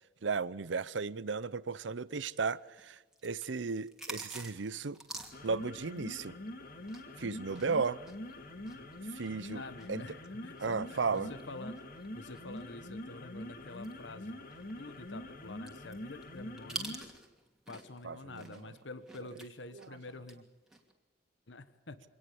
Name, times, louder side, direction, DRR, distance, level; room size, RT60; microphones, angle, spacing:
voice 1, 0.2-5.0 5.4-6.4 7.2-8.0 9.1-9.6 9.9-10.0 10.6-11.3 18.0-18.6 19.7-19.9, right 4 dB, 75° right, 0.7 m, -35 dB
sound 1, 2.2-7.2 7.5-13.0 13.4-13.5 13.8-18.1 18.3-20.4 20.7-20.9, right 1 dB, 5° right, 2.7 m, -48 dB
sound 2, 5.2-17.2, left 1 dB, 50° left, 2.2 m, -45 dB
voice 2, 9.5-11.8 12.1-14.4 14.8-17.1 17.7-20.5 21.5-22.0, left 2 dB, 75° left, 1.2 m, -48 dB
25.0 x 19.0 x 7.1 m
head